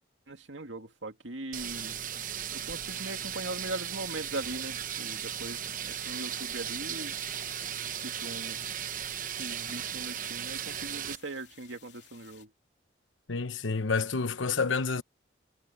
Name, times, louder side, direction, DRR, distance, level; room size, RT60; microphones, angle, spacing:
voice 1, 0.3-2.0 2.5-7.1 8.0-8.7 9.4-12.5, right 2 dB, 80° right, 2.4 m, -40 dB
sound 1, 1.5-11.2, right 9 dB, 45° right, 0.9 m, -36 dB
sound 2, 5.1-12.5, left 10 dB, 65° left, 3.3 m, -57 dB
voice 2, 13.3-15.0, left 4 dB, 85° left, 1.0 m, -29 dB
head